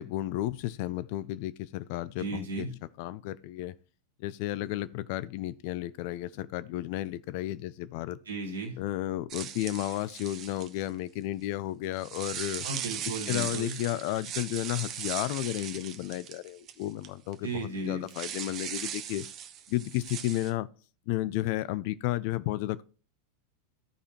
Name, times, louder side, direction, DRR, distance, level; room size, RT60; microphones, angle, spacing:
voice 1, 0.0-2.7 3.0-3.7 4.2-8.2 8.8-12.7 13.3-19.3 19.7-20.7 21.1-22.8, left 15 dB, 45° left, 0.4 m, -33 dB
voice 2, 2.2-2.7 8.3-8.8 12.6-13.8 17.4-18.1, right 3 dB, 70° right, 1.9 m, -35 dB
sound 1, 9.3-10.9 11.9-17.1 17.3-17.4 18.1-20.5, right 9 dB, 35° right, 0.8 m, -39 dB
14.0 x 4.9 x 2.9 m
figure-of-eight pair, 90°, 0 cm